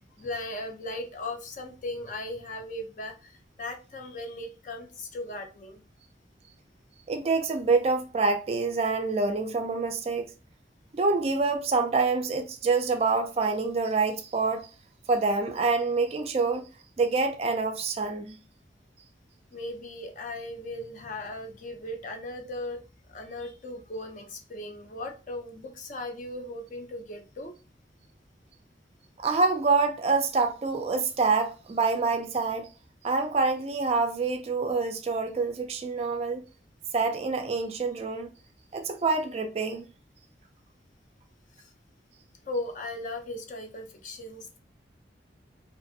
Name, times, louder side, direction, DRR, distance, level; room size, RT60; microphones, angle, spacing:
voice 1, 0.0-5.8 19.5-22.8 23.1-27.6 41.6-41.7 42.4-44.6, left 1 dB, 45° left, 0.5 m, -37 dB
voice 2, 7.1-10.3 10.9-14.7 15.1-16.6 17.0-18.4 29.2-32.7 33.0-36.4 36.9-38.3 38.7-39.9, right 4 dB, 35° right, 0.3 m, -26 dB
2.5 x 2.4 x 2.6 m
head